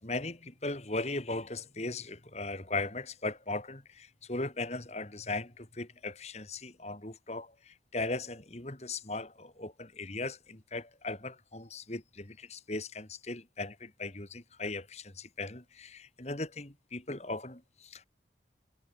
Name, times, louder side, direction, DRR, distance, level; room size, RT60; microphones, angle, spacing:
voice 1, 0.0-18.0, left 2 dB, 35° left, 2.5 m, -38 dB
head